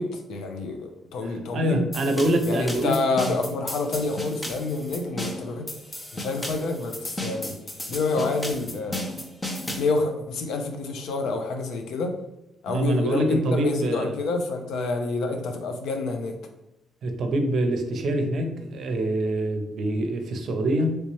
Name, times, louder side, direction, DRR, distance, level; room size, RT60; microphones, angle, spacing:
voice 1, 0.0-1.8 2.4-5.7 6.1-7.6 7.9-9.1 9.8-12.1 12.6-16.4, left 3 dB, 80° left, 4 dB, 0.5 m, -28 dB
voice 2, 1.5-3.0 12.7-14.1 17.0-21.0, right 1 dB, 65° right, 5 dB, 0.6 m, -25 dB
sound 1, 1.9-9.9, left 1 dB, 20° left, 0.7 m, -34 dB
3.2 x 2.9 x 3.0 m, 0.89 s
cardioid pair, 90°, 0 cm